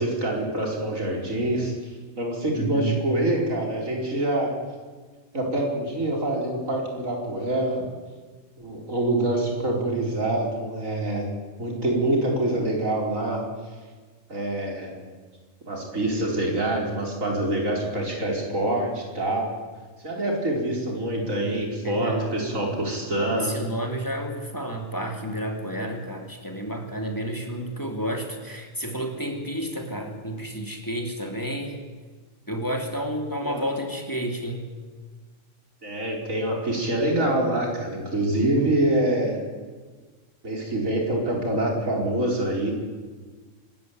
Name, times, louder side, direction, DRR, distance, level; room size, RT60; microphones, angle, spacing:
voice 1, 0.0-1.7 2.2-4.5 5.3-7.8 8.6-11.2 11.6-13.4 14.3-14.9 15.7-19.5 20.0-23.5 33.4-33.6 35.8-39.4 40.4-42.7, right 1 dB, 90° right, 0 dB, 5.1 m, -25 dB
voice 2, 2.5-3.0 21.8-22.4 23.4-31.8 32.5-34.6, right 1 dB, 15° left, 2 dB, 3.0 m, -30 dB
25.0 x 14.0 x 9.5 m, 1.4 s
omnidirectional pair, 1.4 m